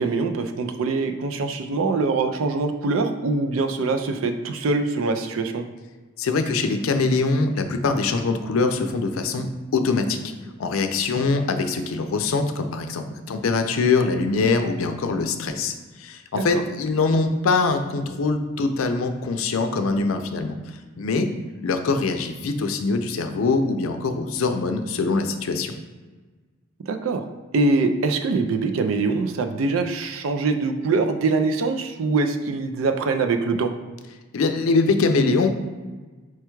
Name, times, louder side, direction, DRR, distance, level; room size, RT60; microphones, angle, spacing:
voice 1, 0.0-5.6 16.3-16.6 26.9-27.2 27.5-33.7, right 3 dB, 75° right, 6 dB, 0.4 m, -23 dB
voice 2, 6.2-9.5 9.7-10.2 10.6-20.6 21.0-21.3 21.6-25.7 34.3-35.6, left 3 dB, 85° left, 7 dB, 0.5 m, -23 dB
4.5 x 2.3 x 4.5 m, 1.3 s
head